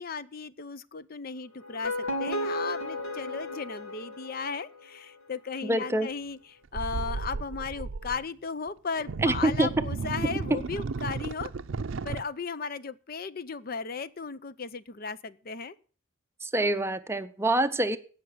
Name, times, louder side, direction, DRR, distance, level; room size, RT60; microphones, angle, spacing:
voice 1, 0.0-11.5 12.0-15.7, left 5 dB, 45° left, 15 dB, 0.6 m, -36 dB
sound 1, 1.6-4.8, left 1 dB, 80° left, 2.6 m, -34 dB
voice 2, 5.6-6.1 9.2-9.7 16.4-18.0, right 1 dB, 15° right, 11 dB, 0.6 m, -26 dB
sound 2, 6.7-8.2 9.0-12.2, right 4 dB, 75° right, 0.5 m, -34 dB
17.0 x 5.9 x 6.6 m, 0.41 s
head